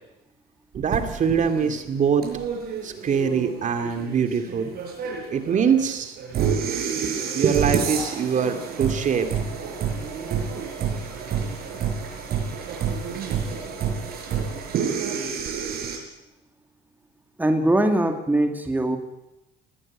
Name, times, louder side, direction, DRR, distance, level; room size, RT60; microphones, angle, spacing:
voice 1, 0.7-2.3 2.8-4.7 5.3-6.2 6.9-9.4, right 7 dB, 50° right, 7 dB, 2.5 m, -23 dB
sound 1, 0.9-16.0, right 6 dB, 65° right, 6.4 m, -29 dB
voice 2, 17.4-19.0, right 1 dB, 10° right, 5 dB, 2.5 m, -21 dB
20.0 x 17.5 x 8.8 m, 0.91 s
cardioid pair, 110°, 17 cm